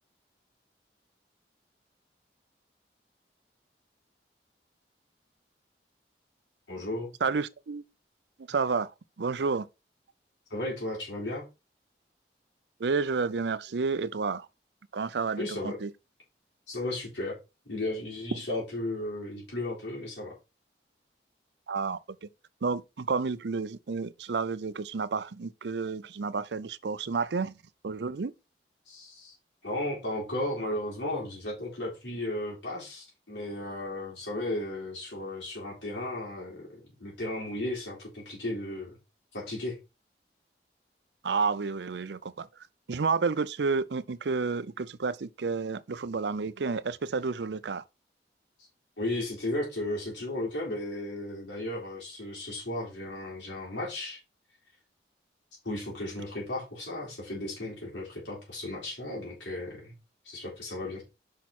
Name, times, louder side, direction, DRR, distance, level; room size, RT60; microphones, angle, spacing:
voice 1, 6.7-7.1 10.5-11.5 15.4-15.8 16.7-17.4 17.7-20.3 28.9-29.3 29.6-39.0 39.3-39.8 49.0-54.2 55.6-59.9 60.2-61.0, left 1 dB, 90° left, 3.9 m, -35 dB
voice 2, 7.2-7.8 8.5-8.9 9.2-9.7 12.8-14.5 14.9-15.9 18.4-18.5 21.7-22.0 22.6-27.5 27.8-28.3 41.2-42.5 42.9-47.8, right 4 dB, 80° right, 0.5 m, -30 dB
6.3 x 5.7 x 4.2 m
head